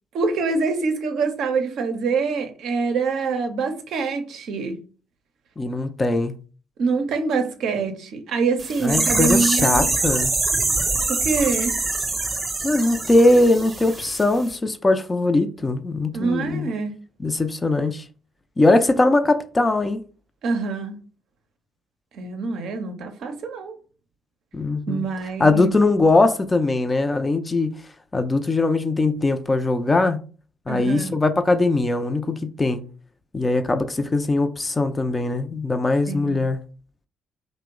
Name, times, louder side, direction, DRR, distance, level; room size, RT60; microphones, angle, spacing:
voice 1, 0.1-4.8 6.8-9.9 11.1-11.7 16.1-16.9 20.4-21.0 22.1-23.8 24.9-25.7 30.7-31.1 36.1-36.5, right 4 dB, 60° right, 0.5 m, -25 dB
voice 2, 5.6-6.3 8.8-10.3 12.6-16.7 17.2-18.0 18.6-20.0 24.5-25.0 25.4-27.8 28.1-30.2 30.7-32.8 33.3-36.6, left 2 dB, 25° left, 0.4 m, -20 dB
sound 1, 8.6-14.2 14.5-14.6, right 3 dB, 30° right, 0.8 m, -24 dB
2.8 x 2.0 x 3.5 m
figure-of-eight pair, 45°, 0 cm